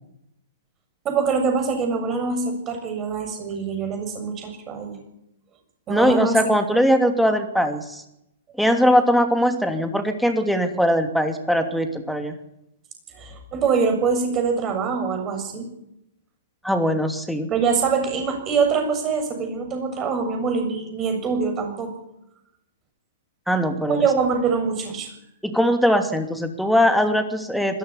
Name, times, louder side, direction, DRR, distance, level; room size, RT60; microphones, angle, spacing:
voice 1, 1.0-5.0 5.9-6.4 13.2-15.7 17.5-21.9 23.9-25.1, right 5 dB, 25° right, 5 dB, 7.2 m, -24 dB
voice 2, 5.9-8.0 8.6-12.3 16.6-17.5 23.5-24.0 25.4-27.8, equal, ahead, 6 dB, 2.8 m, -20 dB
20.5 x 16.5 x 10.0 m, 0.84 s
figure-of-eight pair, 115°, 0 cm